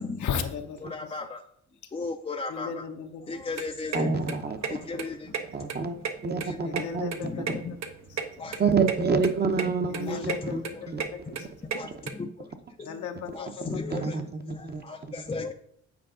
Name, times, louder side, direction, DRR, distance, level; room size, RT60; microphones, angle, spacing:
voice 1, 0.2-1.1 2.5-3.4 4.2-4.7 6.6-7.6 8.1-8.5 9.9-11.5 12.8-13.8, left 7 dB, 75° left, 5 dB, 1.0 m, -36 dB
voice 2, 0.8-1.4 1.9-2.8 3.3-4.2 4.7-5.2 6.4-6.6 7.2-7.7 8.4-8.6 9.7-9.8 10.1-10.6 11.7-11.9 12.2-12.3 12.8-12.9 13.3-14.2 14.8-15.5, left 4 dB, 20° left, 2 dB, 0.5 m, -35 dB
sound 1, 3.3-12.1, right 6 dB, 65° right, 1.0 m, -35 dB
voice 3, 3.9-4.8 5.5-7.6 8.6-11.0 11.3-11.9 13.6-15.1, right 5 dB, 35° right, 7 dB, 0.9 m, -29 dB
8.6 x 4.7 x 3.8 m, 0.69 s
cardioid pair, 90°, 30 cm